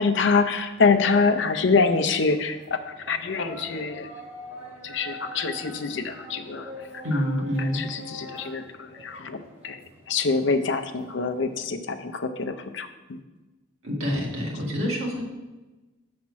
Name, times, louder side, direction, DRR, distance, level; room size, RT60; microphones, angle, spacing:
voice 1, 0.0-2.8 3.1-4.1 4.8-6.7 7.1-7.2 7.6-9.8 10.1-13.2, left 4 dB, 55° left, 8 dB, 0.5 m, -25 dB
sound 1, 0.7-11.6, equal, 30° right, 1.9 m, -44 dB
voice 2, 7.0-7.8 13.8-15.2, equal, 75° right, -3 dB, 1.9 m, -27 dB
7.2 x 4.2 x 6.1 m, 1.1 s
head